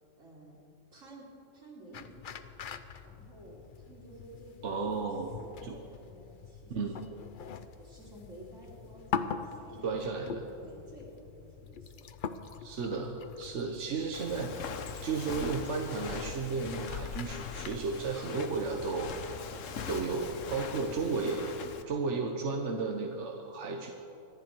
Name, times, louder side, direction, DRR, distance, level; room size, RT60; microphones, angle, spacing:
voice 1, 0.2-0.6 0.9-1.3 1.5-2.4 3.0-4.8 5.4-7.2 7.7-10.2 10.5-12.1 22.1-22.4, right 1 dB, 90° right, -4 dB, 3.9 m, -52 dB
sound 1, 1.9-18.0, left 6 dB, 50° left, 0.7 m, -43 dB
voice 2, 4.6-5.3 5.6-5.8 6.7-7.0 9.8-10.5 12.6-14.6 15.0-19.1 19.9-21.5 21.9-23.9, right 4 dB, 70° right, 2 dB, 1.3 m, -33 dB
Walk footsteps, 14.1-21.8, left 6 dB, 80° left, 1.2 m, -41 dB
25.0 x 10.5 x 4.5 m, 2.7 s
omnidirectional pair, 1.3 m